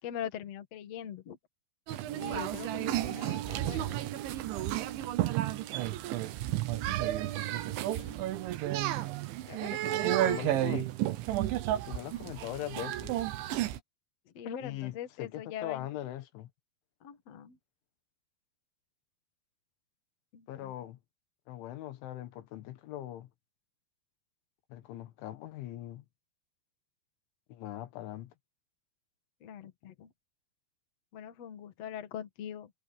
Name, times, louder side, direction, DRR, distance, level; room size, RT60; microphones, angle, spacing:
voice 1, 0.0-1.4 2.2-4.0 7.9-8.2 9.5-10.6 14.2-16.0 17.0-17.6 20.3-20.9 29.4-30.1 31.1-32.7, left 9 dB, 50° left, 2.0 m, -42 dB
sound 1, 1.9-13.8, right 14 dB, 85° right, 3.6 m, -32 dB
sound 2, 2.1-8.6, right 12 dB, 65° right, 2.7 m, -44 dB
voice 2, 10.1-10.9 11.9-13.2 14.6-14.9 15.2-16.5 20.5-21.0 21.5-23.3 24.7-26.1 27.5-28.3, left 13 dB, 80° left, 3.9 m, -40 dB
omnidirectional pair, 5.4 m